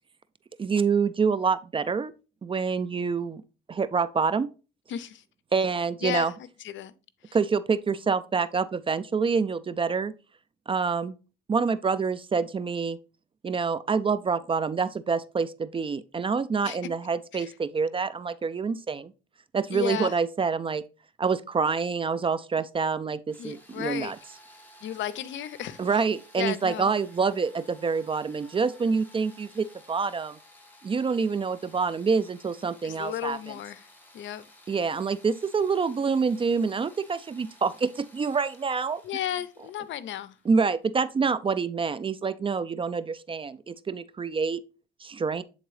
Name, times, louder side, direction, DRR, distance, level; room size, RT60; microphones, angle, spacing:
voice 1, 0.6-2.1 2.4-3.4 3.7-4.5 5.5-6.3 7.3-10.1 10.7-11.1 11.5-13.0 13.4-19.1 19.5-20.8 21.2-24.2 25.8-30.4 30.8-33.4 34.7-39.0 40.5-44.6 45.0-45.4, right 5 dB, 25° right, 0.4 m, -27 dB
voice 2, 4.9-5.2 6.0-6.3 6.6-6.9 7.2-7.4 16.6-16.8 17.3-17.5 19.7-20.2 23.4-24.1 24.8-25.8 26.4-26.9 32.8-33.9 34.1-34.4 39.0-40.4, left 11 dB, 70° left, 0.6 m, -34 dB
sound 1, 23.3-41.0, equal, 10° left, 1.5 m, -55 dB
7.9 x 3.8 x 3.2 m
cardioid pair, 90°, 20 cm